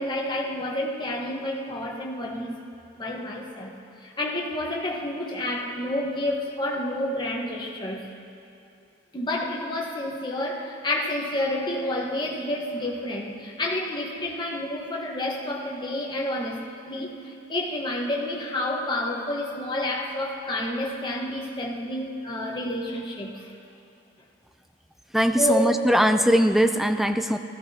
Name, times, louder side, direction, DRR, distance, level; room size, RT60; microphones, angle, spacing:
voice 1, 0.0-2.6 3.0-3.7 4.0-8.1 9.1-23.5 25.4-25.9, left 1 dB, 25° left, -1 dB, 1.1 m, -29 dB
voice 2, 25.1-27.4, equal, ahead, 8 dB, 0.3 m, -20 dB
16.0 x 14.0 x 2.8 m, 2.5 s
head